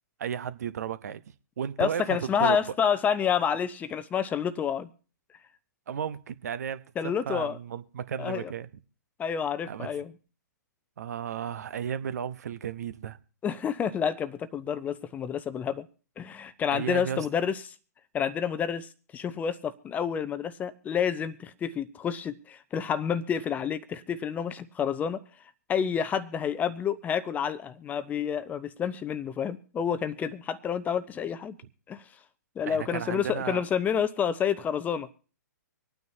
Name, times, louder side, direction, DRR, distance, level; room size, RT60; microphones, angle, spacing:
voice 1, 0.2-1.2 1.6-2.6 5.9-8.7 9.7-9.9 11.0-13.2 16.7-17.3 32.6-33.7, right 8 dB, 60° right, 0.8 m, -34 dB
voice 2, 1.8-4.9 7.0-7.6 8.2-8.5 9.2-10.1 13.4-15.9 16.2-17.7 18.1-25.2 25.7-31.6 31.9-32.0 32.6-35.1, left 7 dB, 15° left, 0.6 m, -29 dB
25.5 x 9.3 x 2.7 m
figure-of-eight pair, 125°, 10 cm